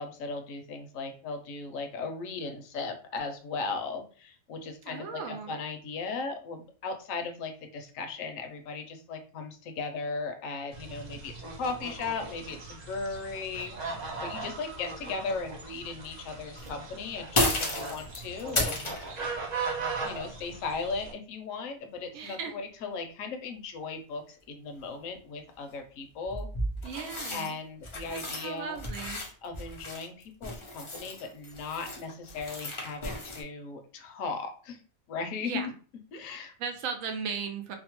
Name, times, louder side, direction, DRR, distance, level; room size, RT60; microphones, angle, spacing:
voice 1, 0.0-19.0 20.0-26.5 27.3-28.8 29.4-34.8 35.1-35.7 36.1-36.5, left 4 dB, 75° left, 6 dB, 1.0 m, -37 dB
voice 2, 4.8-5.5 22.1-22.5 26.8-27.6 28.1-29.2 35.4-35.7 36.6-37.8, right 6 dB, 75° right, 5 dB, 1.0 m, -36 dB
sound 1, 10.7-21.1, right 4 dB, 45° right, 0.6 m, -39 dB
sound 2, 16.6-16.7 17.3-19.1 25.1-25.2 26.2-28.5 28.7-33.4, left 1 dB, 50° left, 0.3 m, -33 dB
2.8 x 2.0 x 2.9 m, 0.39 s
omnidirectional pair, 1.4 m